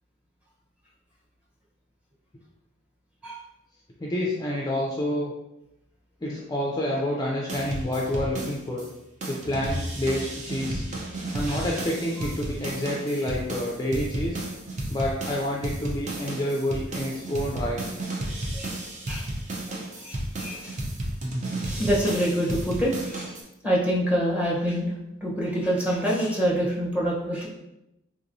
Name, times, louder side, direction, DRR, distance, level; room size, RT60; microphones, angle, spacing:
voice 1, 4.0-5.3 6.2-8.8 9.3-10.9 11.3-14.4 14.9-17.8, left 1 dB, 20° left, -3 dB, 0.4 m, -28 dB
sound 1, 7.5-8.9 9.2-23.4, right 1 dB, 35° right, 0.6 m, -33 dB
voice 2, 19.7-20.8 21.6-23.3 23.6-24.9 25.2-27.5, equal, 5° right, -5 dB, 0.8 m, -26 dB
3.6 x 2.9 x 2.6 m, 0.86 s
head